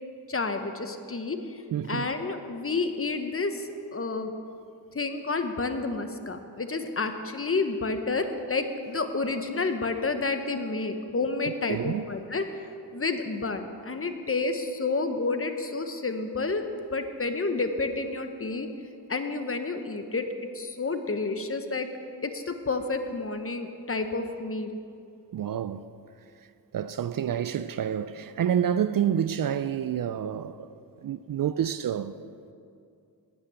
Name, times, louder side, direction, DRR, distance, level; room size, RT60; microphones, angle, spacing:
voice 1, 0.3-1.6 1.9-3.7 3.9-4.3 4.9-12.6 12.9-18.7 19.1-20.3 20.5-21.9 22.2-24.8, left 3 dB, 30° left, 1.0 m, -30 dB
voice 2, 1.7-2.1 11.5-12.0 25.3-25.9 26.7-30.7 31.0-32.1, right 9 dB, 55° right, 0.5 m, -28 dB
9.9 x 8.3 x 7.4 m
cardioid pair, 60°, 43 cm